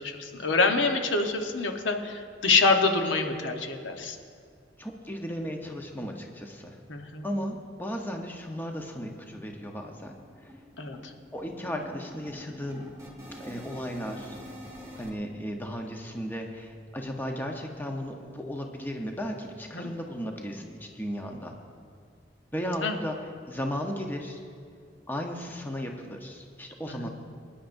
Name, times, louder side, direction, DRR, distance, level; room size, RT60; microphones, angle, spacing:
voice 1, 0.0-4.2 6.9-7.3 10.8-11.1 19.7-19.9 22.8-23.0 26.9-27.1, left 3 dB, 90° left, 4 dB, 1.1 m, -26 dB
voice 2, 4.8-6.8 7.2-10.1 10.4-10.5 11.3-12.8 13.4-14.4 15.0-21.6 22.5-23.2 23.5-24.4 25.1-27.1, equal, 10° left, 2 dB, 0.9 m, -35 dB
sound 1, 8.3-8.4 8.7-8.9 9.2-15.1, equal, 15° right, 1.7 m, -46 dB
24.0 x 10.0 x 2.6 m, 2.1 s
head